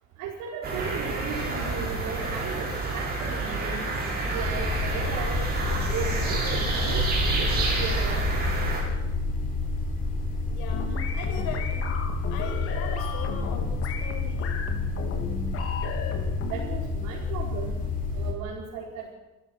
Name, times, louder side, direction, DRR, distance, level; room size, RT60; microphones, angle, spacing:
voice 1, 0.2-2.7 2.9-3.8 4.3-5.4 5.9-7.0 7.3-8.2 16.5-17.7 18.1-19.1, right 6 dB, 75° right, -3 dB, 5.0 m, -36 dB
sound 1, 0.6-8.8, right 3 dB, 30° right, 7.4 m, -28 dB
sound 2, 4.4-18.3, left 3 dB, 25° left, 4.6 m, -29 dB
voice 2, 10.5-12.0 12.3-14.6, left 7 dB, 80° left, 4 dB, 6.1 m, -39 dB
sound 3, 10.7-16.7, left 5 dB, 45° left, 3.4 m, -35 dB
28.5 x 15.0 x 6.5 m, 1.1 s
cardioid pair, 170°, 31 cm